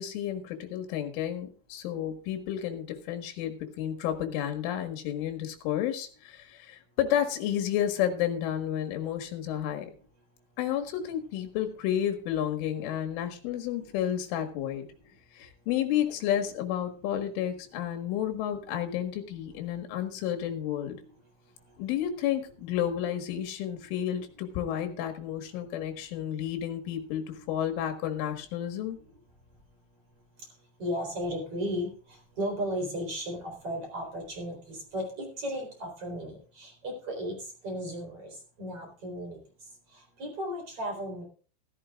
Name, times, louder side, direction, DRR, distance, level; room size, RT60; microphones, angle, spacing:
voice 1, 0.0-9.9 10.6-14.9 15.3-21.0 21.8-29.0, left 10 dB, 80° left, 7 dB, 4.1 m, -31 dB
voice 2, 30.8-31.9 32.4-37.3 37.6-39.4 40.2-41.2, equal, 30° right, 1 dB, 4.3 m, -35 dB
14.5 x 14.5 x 2.4 m, 0.39 s
omnidirectional pair, 5.5 m